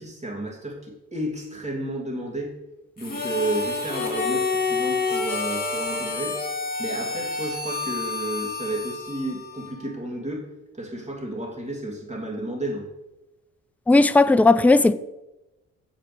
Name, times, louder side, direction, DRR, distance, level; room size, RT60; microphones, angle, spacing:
voice 1, 0.0-2.5 3.0-6.4 6.8-10.5 10.7-12.9, right 1 dB, 20° right, 2.7 m, -32 dB
Harmonica, 3.0-9.9, left 4 dB, 30° left, 2.5 m, -28 dB
voice 2, 13.9-14.9, left 2 dB, 5° left, 0.3 m, -16 dB
7.4 x 5.2 x 6.9 m
cardioid pair, 90°, 30 cm